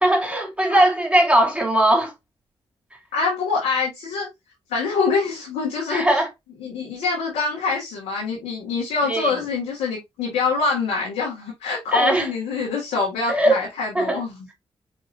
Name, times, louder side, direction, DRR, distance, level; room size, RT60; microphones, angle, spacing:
voice 1, 0.0-2.1 5.9-6.3 9.0-9.4 11.9-12.3 13.3-13.5 13.9-14.2, right 1 dB, 10° right, 2.8 m, -19 dB
voice 2, 3.1-4.3 4.7-6.2 6.6-14.4, left 4 dB, 90° left, 1.6 m, -25 dB
4.8 x 3.7 x 2.6 m
supercardioid pair, 40°, 11 cm